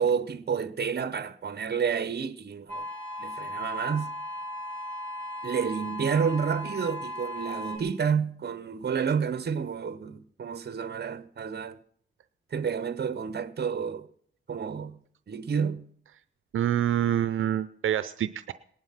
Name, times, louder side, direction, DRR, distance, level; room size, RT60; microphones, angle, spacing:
voice 1, 0.0-2.9 3.2-4.1 5.4-11.8 12.5-14.1 14.5-15.0 15.3-15.8, right 6 dB, 55° right, 1.0 m, -30 dB
sound 1, 2.7-7.8, equal, 5° left, 3.5 m, -36 dB
voice 2, 16.5-18.5, right 10 dB, 85° right, 0.6 m, -26 dB
19.0 x 11.0 x 5.8 m
wide cardioid pair, 100°, 20 cm